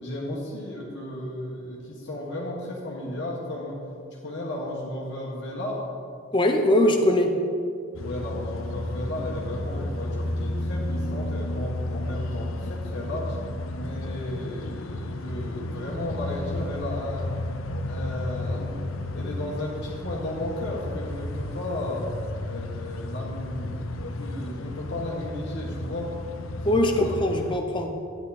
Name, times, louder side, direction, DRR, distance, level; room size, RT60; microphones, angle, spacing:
voice 1, 0.0-3.8 4.1-5.8 8.0-13.4 13.7-17.3 17.8-18.8 19.1-22.0 22.5-23.8 24.2-26.1 26.8-27.2, left 1 dB, 55° left, -3 dB, 1.6 m, -34 dB
voice 2, 6.3-7.3 26.6-27.9, left 1 dB, 20° left, 3 dB, 0.7 m, -21 dB
sound 1, 7.9-27.6, left 1 dB, 70° left, 0.7 m, -33 dB
12.0 x 9.5 x 4.2 m, 2.3 s
head